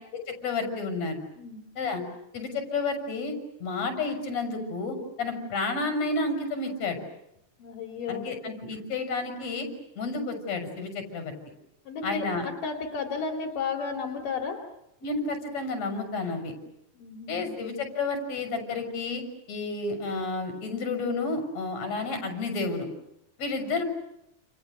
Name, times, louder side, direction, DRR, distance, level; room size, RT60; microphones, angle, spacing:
voice 1, 0.3-1.2 1.8-2.0 2.3-3.4 3.6-7.0 8.1-9.7 10.0-11.3 12.0-12.5 15.0-16.5 17.3-19.2 19.5-22.9 23.4-23.8, left 3 dB, 55° left, 6 dB, 7.7 m, -31 dB
voice 2, 7.6-8.3 11.9-14.6 16.9-17.5, left 5 dB, 85° left, 2 dB, 4.1 m, -33 dB
29.5 x 29.5 x 6.6 m, 0.83 s
omnidirectional pair, 3.7 m